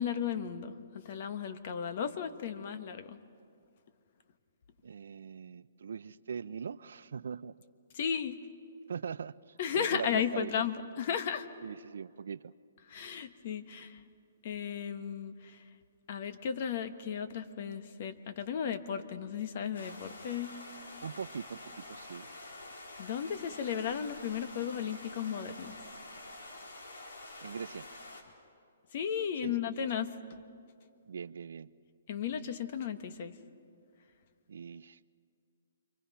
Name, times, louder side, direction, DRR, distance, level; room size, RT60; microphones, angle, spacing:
voice 1, 0.0-3.2 7.9-8.4 9.6-11.5 12.9-14.0 14.4-15.6 16.1-20.5 23.0-25.8 28.9-30.1 32.1-33.4, left 8 dB, 50° left, 10 dB, 1.4 m, -35 dB
voice 2, 4.8-7.5 8.9-10.5 11.6-12.5 21.0-22.3 27.4-27.9 29.4-29.5 31.1-31.7 34.5-35.0, right 6 dB, 75° right, 16 dB, 0.6 m, -41 dB
sound 1, 19.7-28.2, left 2 dB, 80° left, 3.4 m, -48 dB
29.0 x 24.0 x 5.7 m, 2.3 s
hypercardioid pair, 150°, 0 cm